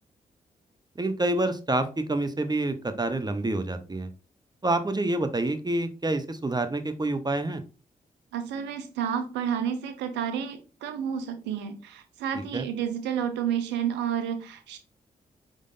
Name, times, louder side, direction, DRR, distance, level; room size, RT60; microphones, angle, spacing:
voice 1, 1.0-4.1 4.6-7.6 12.5-12.6, right 2 dB, 25° right, 9 dB, 0.7 m, -27 dB
voice 2, 8.3-14.8, right 8 dB, 90° right, 8 dB, 0.6 m, -30 dB
5.0 x 3.8 x 2.6 m, 0.34 s
supercardioid pair, 40°, 18 cm